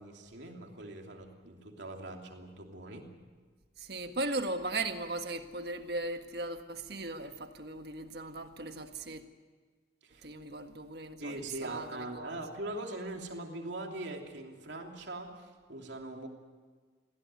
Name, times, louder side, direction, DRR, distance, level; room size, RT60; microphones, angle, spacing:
voice 1, 0.0-3.1 10.0-10.3 11.2-16.3, right 2 dB, 75° right, 2 dB, 3.0 m, -42 dB
voice 2, 3.8-9.2 10.2-12.4, right 2 dB, 60° right, 7 dB, 1.6 m, -38 dB
23.0 x 16.5 x 9.7 m, 1.5 s
head